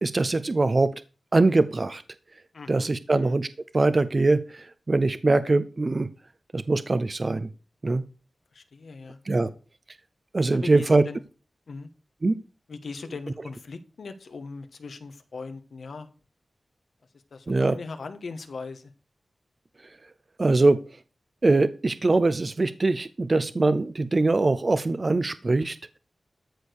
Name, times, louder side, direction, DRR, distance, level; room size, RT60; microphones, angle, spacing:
voice 1, 0.0-0.9 1.3-2.0 2.7-3.5 3.7-6.1 6.5-7.5 7.8-8.0 9.3-9.5 10.3-11.0 12.2-12.4 17.5-17.7 20.4-20.8 21.4-26.0, right 3 dB, 40° right, 13 dB, 0.8 m, -22 dB
voice 2, 2.5-3.4 8.5-9.5 10.5-11.2 11.7-11.9 12.7-16.1 17.3-18.9, left 4 dB, 80° left, 8 dB, 1.4 m, -39 dB
14.0 x 5.0 x 6.4 m, 0.34 s
wide cardioid pair, 70°, 0 cm